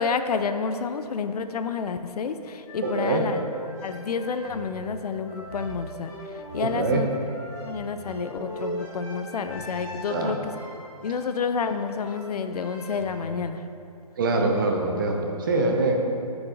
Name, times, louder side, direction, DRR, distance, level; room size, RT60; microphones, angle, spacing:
voice 1, 0.0-3.4 3.8-7.1 7.6-10.5 11.0-13.6, left 5 dB, 75° left, 9 dB, 0.4 m, -29 dB
sound 1, 2.7-13.3, equal, 10° left, 0.8 m, -40 dB
voice 2, 2.8-3.2 6.6-7.0 10.1-10.4 14.2-16.0, right 3 dB, 35° right, 2 dB, 0.5 m, -24 dB
8.3 x 4.7 x 2.5 m, 2.7 s
hypercardioid pair, 155°, 20 cm